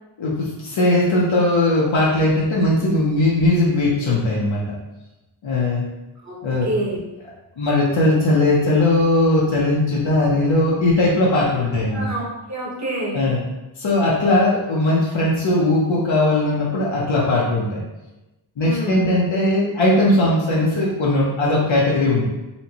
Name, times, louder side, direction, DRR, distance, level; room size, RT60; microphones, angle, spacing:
voice 1, 0.2-4.6 5.4-5.9 6.4-6.7 7.6-12.1 13.1-13.4 13.8-17.8 18.6-22.3, left 2 dB, 80° left, -5 dB, 0.8 m, -19 dB
voice 2, 6.6-7.0 11.9-13.2 18.6-19.1, right 1 dB, 35° right, -5 dB, 1.2 m, -27 dB
4.2 x 2.2 x 2.9 m, 1.0 s
wide cardioid pair, 95°, 46 cm